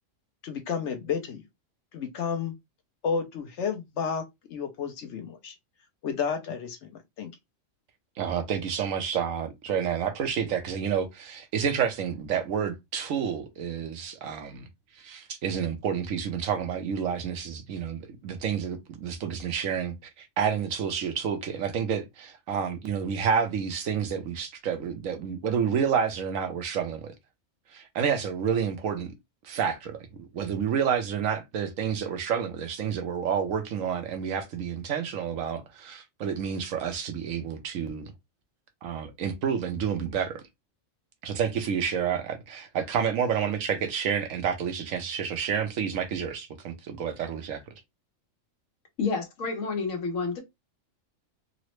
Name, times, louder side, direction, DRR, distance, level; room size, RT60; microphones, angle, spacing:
voice 1, 0.4-1.4 1.9-2.5 3.0-4.2 4.5-5.5 6.0-7.3, left 6 dB, 65° left, 1.0 m, -31 dB
voice 2, 8.2-14.7 15.0-27.1 27.7-29.1 29.4-38.1 38.8-40.4 41.2-47.6, right 7 dB, 85° right, 1.1 m, -29 dB
voice 3, 49.0-50.4, left 4 dB, 85° left, 1.4 m, -29 dB
3.8 x 2.0 x 3.0 m
omnidirectional pair, 1.4 m